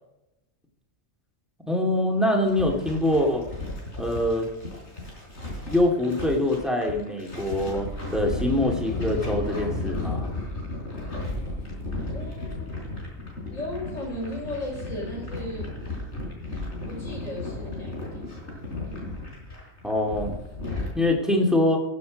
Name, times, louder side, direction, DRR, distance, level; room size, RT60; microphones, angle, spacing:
voice 1, 1.7-3.4 4.0-4.5 5.7-10.3 19.8-20.3 20.9-21.8, left 1 dB, ahead, 1 dB, 2.4 m, -24 dB
sound 1, 2.4-20.9, left 2 dB, 60° left, 4.2 m, -34 dB
voice 2, 12.1-13.0 13.5-15.7 16.9-18.3, left 1 dB, 80° left, -3 dB, 5.7 m, -36 dB
15.0 x 7.5 x 5.2 m, 0.94 s
omnidirectional pair, 1.3 m